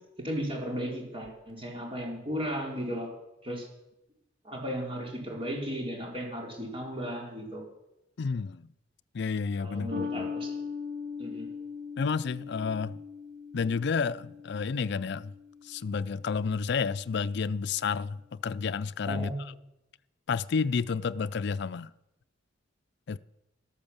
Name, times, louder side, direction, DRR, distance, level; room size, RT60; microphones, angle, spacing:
voice 1, 0.2-3.1 3.4-3.7 4.4-7.6 9.6-10.5 11.2-11.5 19.1-19.4, equal, 30° right, 4.2 m, -35 dB
voice 2, 8.2-8.7 9.1-10.3 12.0-13.0 13.5-15.3 15.6-19.5 20.3-21.9 23.1-23.2, left 5 dB, 60° left, 0.4 m, -30 dB
sound 1, 9.9-16.7, left 5 dB, 60° right, 3.3 m, -40 dB
13.0 x 11.5 x 7.2 m
head